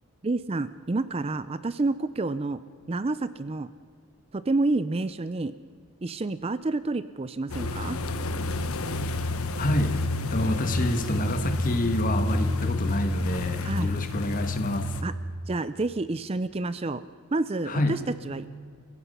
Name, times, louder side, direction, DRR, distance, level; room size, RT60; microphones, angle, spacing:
voice 1, 0.2-2.6 2.9-3.7 4.3-5.5 6.0-8.0 13.6-13.9 15.0-15.1 15.5-17.0 17.3-18.0 18.2-18.5, right 2 dB, 25° right, 14 dB, 0.4 m, -29 dB
sound 1, 7.5-15.0, left 2 dB, 80° left, 1.1 m, -29 dB
voice 2, 9.6-15.0 17.6-18.0, left 1 dB, 40° left, 7 dB, 1.6 m, -28 dB
30.0 x 16.0 x 5.6 m, 2.1 s
head